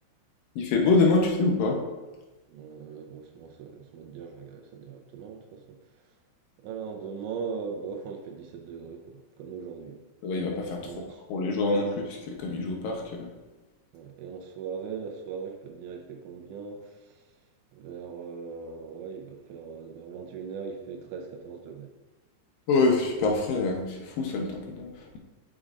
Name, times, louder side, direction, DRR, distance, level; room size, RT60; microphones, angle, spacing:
voice 1, 0.6-1.8 10.2-11.0 11.3-13.3 22.7-25.2, left 3 dB, 75° left, 1 dB, 2.0 m, -25 dB
voice 2, 2.5-5.6 6.6-10.0 10.8-11.2 13.9-17.2 17.7-21.9, right 6 dB, 85° right, 1 dB, 3.0 m, -39 dB
10.0 x 6.3 x 2.5 m, 1.2 s
omnidirectional pair, 5.1 m